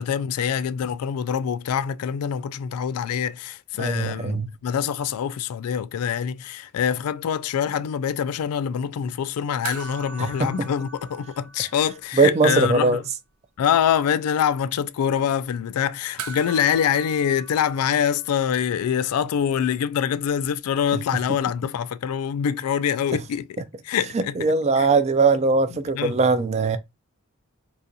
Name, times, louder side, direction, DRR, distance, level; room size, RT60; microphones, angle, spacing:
voice 1, 0.0-13.0 13.6-24.4 24.8-24.9 25.9-26.2, left 8 dB, 85° left, 0.3 m, -25 dB
voice 2, 3.8-4.5 10.2-10.5 12.2-13.0 24.1-26.8, right 4 dB, 30° right, 0.3 m, -20 dB
sound 1, 9.6-12.3 12.6-12.7 16.2-18.8 20.9-21.0, right 5 dB, 85° right, 0.5 m, -40 dB
4.0 x 2.4 x 2.6 m
head